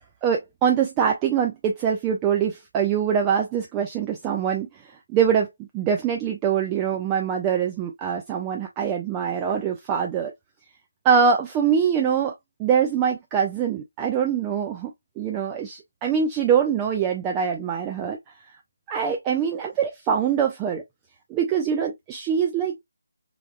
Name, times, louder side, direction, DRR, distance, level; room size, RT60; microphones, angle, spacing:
voice 1, 0.2-10.3 11.0-12.3 12.6-18.2 18.9-20.8 21.3-22.8, right 7 dB, 15° right, 0.3 m, -24 dB
3.3 x 2.2 x 2.4 m
figure-of-eight pair, 155°, 0 cm